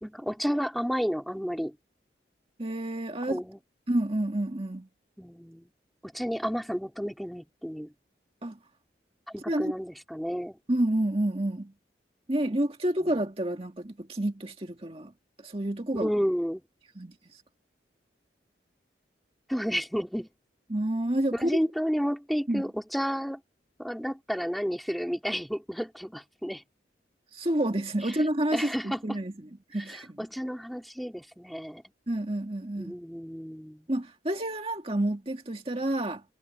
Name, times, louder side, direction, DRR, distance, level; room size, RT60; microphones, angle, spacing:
voice 1, 0.0-1.8 3.3-3.6 5.2-5.7 6.0-7.9 9.3-10.6 16.0-16.6 19.5-20.3 21.4-23.4 23.8-26.6 28.5-29.2 29.9-31.8 32.8-33.9, equal, ahead, 2.9 m, -31 dB
voice 2, 2.6-3.4 3.9-4.9 8.4-8.6 9.5-9.7 10.7-11.7 12.3-15.1 15.4-16.1 17.0-17.2 20.7-21.6 22.5-22.6 27.3-30.3 32.1-33.0 33.9-36.2, right 1 dB, 35° right, 2.0 m, -29 dB
head